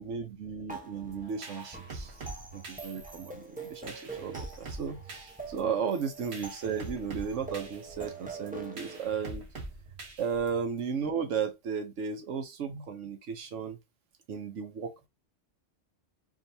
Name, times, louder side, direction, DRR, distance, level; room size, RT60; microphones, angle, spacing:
voice 1, 0.0-9.5 10.2-13.8 14.3-15.1, right 6 dB, 85° right, 1.2 m, -35 dB
sound 1, 0.7-9.0, right 4 dB, 10° right, 0.8 m, -45 dB
sound 2, 1.1-10.8, right 3 dB, 60° right, 1.4 m, -44 dB
4.9 x 2.9 x 2.7 m
omnidirectional pair, 1.2 m